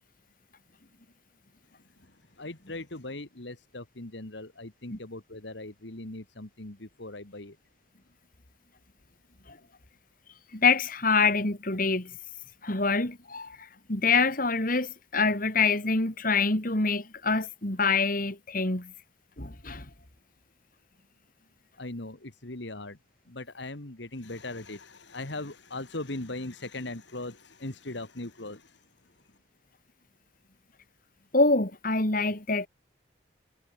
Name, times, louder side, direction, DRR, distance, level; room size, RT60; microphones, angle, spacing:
voice 1, 1.9-7.6 21.8-23.0 23.3-28.9, left 2 dB, 65° left, 2.1 m, -39 dB
voice 2, 10.5-12.1 12.6-18.9 19.4-19.9 31.3-32.7, left 4 dB, 45° left, 3.0 m, -26 dB
head